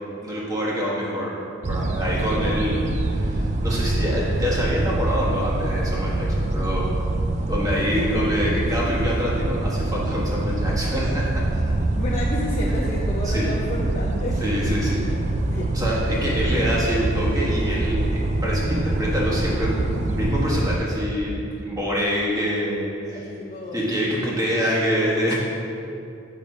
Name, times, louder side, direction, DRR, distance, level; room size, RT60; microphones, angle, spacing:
voice 1, 0.2-6.9 7.5-11.6 12.7-12.8 13.2-13.5 14.4-15.0 15.7-23.2 23.7-25.4, equal, 20° right, -6 dB, 1.4 m, -26 dB
sound 1, 1.6-20.8, right 2 dB, 35° right, 0.4 m, -25 dB
voice 2, 11.9-14.7 15.0-15.1 15.5-15.7 16.2-16.4 23.1-23.8, left 1 dB, 35° left, -4 dB, 0.6 m, -31 dB
6.6 x 5.2 x 5.2 m, 2.7 s
head